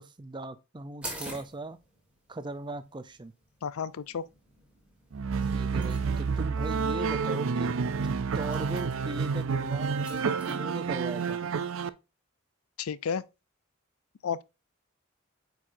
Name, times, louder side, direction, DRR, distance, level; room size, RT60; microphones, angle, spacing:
voice 1, 0.0-1.8 2.3-3.3 5.5-7.7 8.0-11.4, right 2 dB, 20° right, 0.5 m, -39 dB
sound 1, 1.0-10.5, right 1 dB, 5° right, 1.8 m, -48 dB
voice 2, 3.6-4.2 12.8-13.2 14.2-14.4, left 6 dB, 80° left, 0.4 m, -32 dB
sound 2, 5.1-11.9, right 5 dB, 65° right, 0.5 m, -29 dB
8.5 x 4.8 x 2.6 m
head